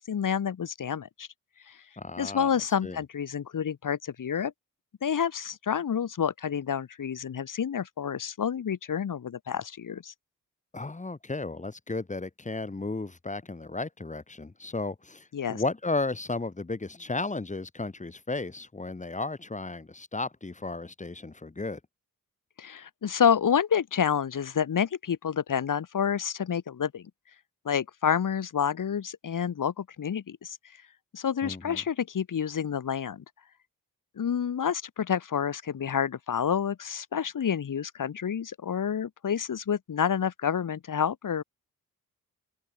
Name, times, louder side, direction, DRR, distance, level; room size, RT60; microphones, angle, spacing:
voice 1, 0.1-1.3 1.7-1.8 2.2-4.5 5.0-10.1 15.3-15.6 22.6-27.1 27.7-30.6 31.1-33.2 34.2-41.4, left 8 dB, 65° left, 1.9 m, -29 dB
voice 2, 2.0-2.5 2.8-3.0 10.7-21.8 31.4-31.8, left 3 dB, 20° left, 1.9 m, -34 dB
wide cardioid pair, 110°, 34 cm